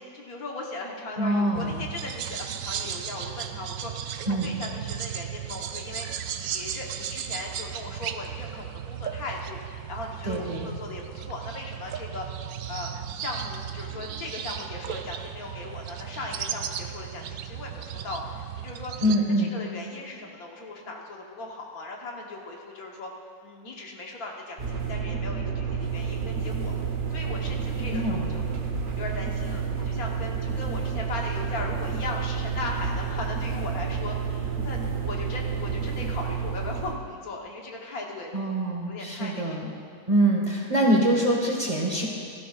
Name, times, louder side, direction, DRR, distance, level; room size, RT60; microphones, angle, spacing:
voice 1, 0.0-6.1 6.3-18.9 19.4-23.1 23.4-26.7 27.1-28.4 29.0-38.3 38.9-39.6, left 2 dB, 65° left, 0 dB, 1.6 m, -38 dB
voice 2, 1.2-1.8 4.3-4.5 10.3-10.7 19.0-19.5 27.9-28.3 38.3-39.6 40.1-42.1, right 1 dB, 25° right, -2 dB, 1.3 m, -24 dB
sound 1, 1.5-19.2, right 9 dB, 70° right, 0.9 m, -36 dB
sound 2, 24.6-37.0, right 6 dB, 45° right, 1.1 m, -30 dB
16.0 x 13.5 x 2.4 m, 2.3 s
omnidirectional pair, 1.7 m